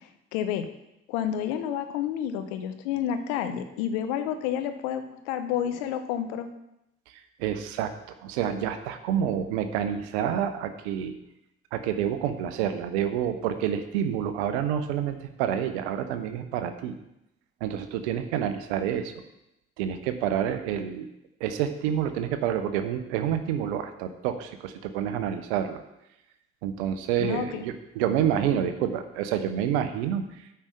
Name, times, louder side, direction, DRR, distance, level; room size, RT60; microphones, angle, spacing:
voice 1, 0.3-0.7 1.1-6.5 27.2-27.6, left 9 dB, 85° left, 9 dB, 0.8 m, -30 dB
voice 2, 7.4-7.9 8.2-11.1 11.7-16.9 17.6-19.1 19.8-21.1 21.4-25.8 26.6-30.2, right 9 dB, 85° right, 9 dB, 0.7 m, -28 dB
8.7 x 5.6 x 6.4 m, 0.86 s
hypercardioid pair, 45°, 33 cm